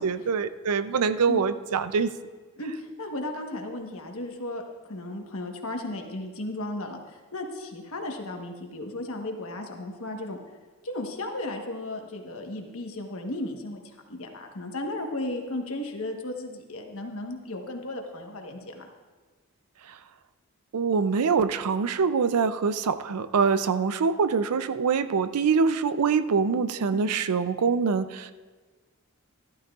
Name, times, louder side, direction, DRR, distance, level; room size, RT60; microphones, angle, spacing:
voice 1, 0.0-2.1 20.7-28.3, right 5 dB, 90° right, 13 dB, 0.5 m, -24 dB
voice 2, 2.6-10.4 10.8-13.8 14.1-18.9 26.9-27.1, left 1 dB, 65° left, 3 dB, 1.2 m, -35 dB
14.0 x 13.0 x 2.4 m, 1.4 s
head